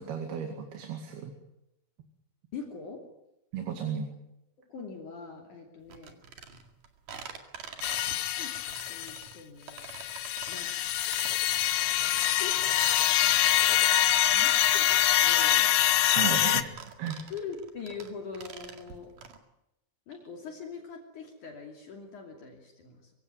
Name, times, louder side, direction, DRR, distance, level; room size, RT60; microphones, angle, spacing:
voice 1, 0.0-1.3 3.5-4.1 16.2-17.3, right 7 dB, 90° right, 4 dB, 4.2 m, -34 dB
voice 2, 2.5-3.1 4.7-6.2 7.9-8.5 8.9-10.0 10.5-10.7 12.1-12.6 14.0-14.9 15.2-16.0 17.3-19.1 20.1-23.1, left 5 dB, 55° left, 2 dB, 4.0 m, -43 dB
sound 1, 5.9-19.4, right 7 dB, 65° right, 3.6 m, -47 dB
sound 2, 7.8-9.2 9.8-16.6, left 12 dB, 70° left, 2.6 m, -25 dB
25.0 x 16.5 x 9.4 m, 0.87 s
omnidirectional pair, 4.3 m